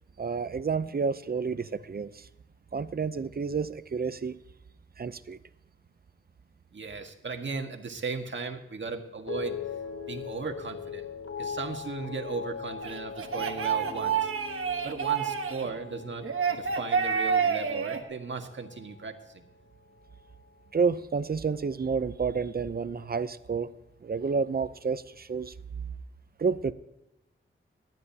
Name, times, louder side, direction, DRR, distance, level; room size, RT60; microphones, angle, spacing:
voice 1, 0.2-2.3 2.7-4.4 5.0-5.4 20.7-23.7 24.0-25.5 26.4-26.7, right 5 dB, 45° right, 14 dB, 0.7 m, -30 dB
voice 2, 6.7-9.6 10.1-11.1 11.4-14.3 14.8-19.4, right 4 dB, 60° right, 5 dB, 1.6 m, -37 dB
sound 1, 9.3-19.6 19.9-20.5, left 6 dB, 85° left, 1.0 m, -41 dB
sound 2, 12.8-15.7 16.2-18.0, right 7 dB, 85° right, 1.2 m, -28 dB
19.0 x 12.5 x 2.9 m, 0.89 s
wide cardioid pair, 80°, 21 cm